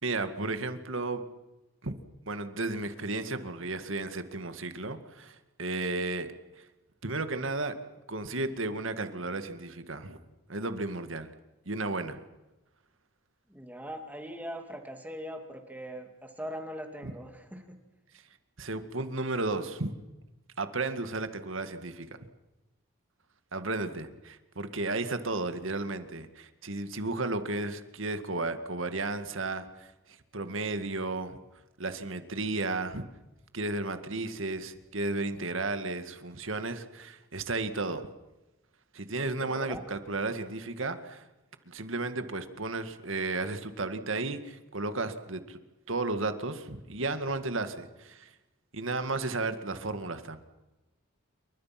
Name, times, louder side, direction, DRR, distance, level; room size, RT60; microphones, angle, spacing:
voice 1, 0.0-1.2 1.8-1.9 2.3-6.3 7.0-7.7 8.1-10.2 10.5-11.3 11.7-12.2 17.0-17.1 18.6-19.9 20.6-22.1 23.5-29.9 30.3-31.4 31.8-33.1 33.5-38.0 38.9-41.2 41.7-45.6 45.9-48.3 48.7-50.4, right 2 dB, 70° right, 9 dB, 2.0 m, -33 dB
voice 2, 13.5-17.8 39.4-39.8, equal, 10° right, 4 dB, 2.5 m, -41 dB
28.5 x 24.0 x 6.0 m, 1.1 s
head